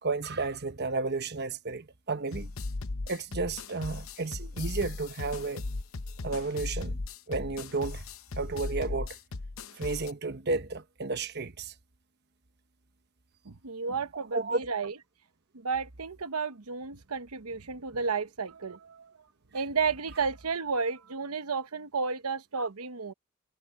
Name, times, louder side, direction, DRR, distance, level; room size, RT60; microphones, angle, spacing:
voice 1, 0.0-2.5 3.1-5.6 6.2-7.0 7.3-8.0 8.4-9.2 9.8-11.7 14.1-14.6 22.6-22.7, right 3 dB, 50° right, 1.1 m, -32 dB
sound 1, 2.3-10.1, left 3 dB, 65° left, 0.8 m, -37 dB
voice 2, 13.4-14.9 15.5-19.1 19.5-23.1, right 5 dB, 90° right, 1.1 m, -32 dB
head